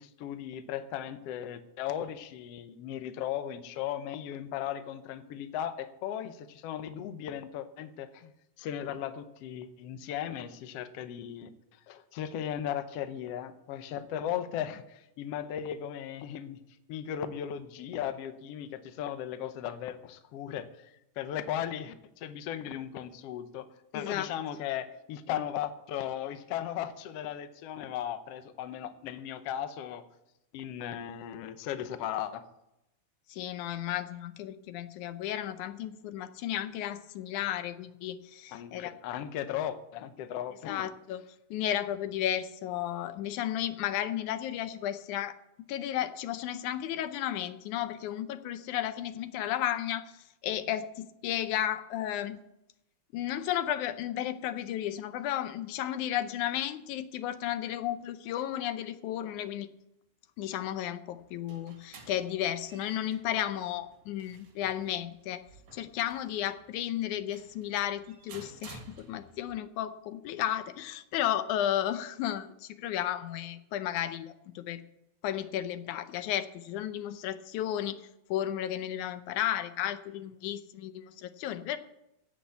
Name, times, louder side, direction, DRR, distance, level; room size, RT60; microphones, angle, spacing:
voice 1, 0.0-8.3 8.6-16.6 16.9-23.7 23.9-30.0 30.5-32.4 38.5-40.9, left 10 dB, 70° left, 10 dB, 1.7 m, -37 dB
voice 2, 23.9-24.3 33.3-38.9 40.7-41.2 41.5-45.4 45.7-50.1 50.4-52.4 53.1-59.7 60.4-65.4 65.7-74.8 75.2-78.0 78.3-81.8, left 11 dB, 85° left, 11 dB, 2.2 m, -33 dB
sound 1, 61.1-69.6, right 3 dB, 80° right, 3.5 m, -54 dB
16.0 x 6.1 x 8.2 m, 0.85 s
omnidirectional pair, 3.4 m